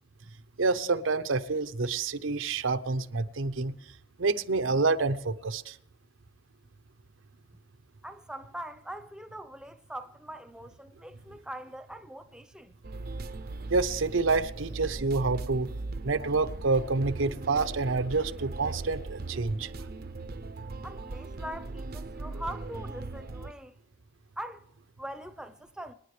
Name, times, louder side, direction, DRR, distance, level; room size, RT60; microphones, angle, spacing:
voice 1, 0.6-3.7 4.2-5.8 13.7-15.7 16.0-19.7, right 3 dB, 85° right, 0.8 m, -28 dB
voice 2, 8.0-12.8 20.8-23.7 24.4-24.6 25.0-25.9, right 1 dB, 5° right, 0.8 m, -42 dB
sound 1, 12.8-23.5, right 3 dB, 50° right, 0.6 m, -39 dB
25.5 x 10.0 x 3.2 m
head